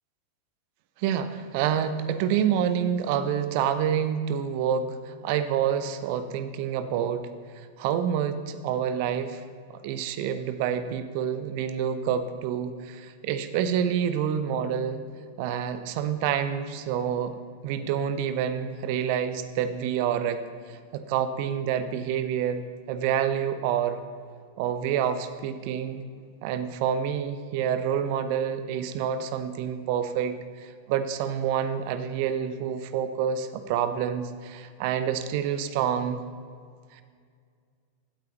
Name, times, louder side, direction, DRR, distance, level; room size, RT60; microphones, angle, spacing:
voice 1, 1.0-7.3 7.8-9.4 9.8-15.0 15.4-17.3 17.6-20.4 20.9-24.0 24.6-26.0 26.4-30.4 30.9-36.2, right 8 dB, 45° right, 11 dB, 0.6 m, -27 dB
16.5 x 8.5 x 3.0 m, 2.1 s
figure-of-eight pair, 90°, 0 cm